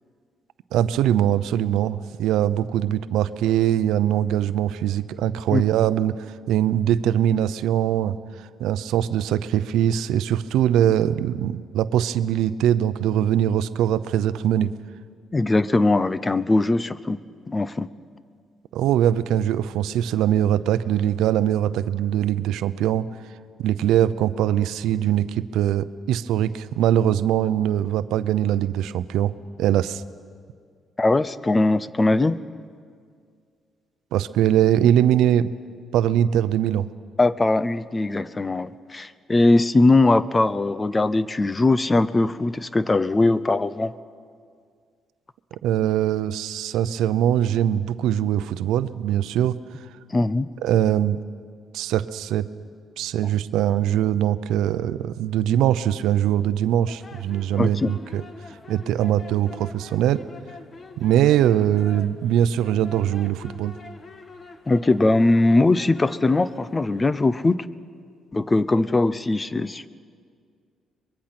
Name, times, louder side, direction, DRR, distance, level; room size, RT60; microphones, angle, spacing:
voice 1, 0.7-6.2 6.5-8.2 8.6-14.7 18.7-23.1 23.6-30.0 34.1-35.5 35.9-36.9 45.6-49.6 50.6-51.2 51.7-52.5 53.0-58.2 58.7-60.2 61.0-63.8, right 11 dB, 90° right, 14 dB, 0.6 m, -22 dB
voice 2, 15.3-17.2 17.5-17.9 31.0-32.4 37.2-43.9 50.1-50.5 57.5-58.0 64.7-67.6 68.3-69.9, left 2 dB, 25° left, 16 dB, 0.7 m, -20 dB
sound 1, 56.9-67.1, left 3 dB, 40° left, 1.5 m, -45 dB
24.0 x 22.0 x 6.0 m, 2.1 s
cardioid pair, 90°, 0 cm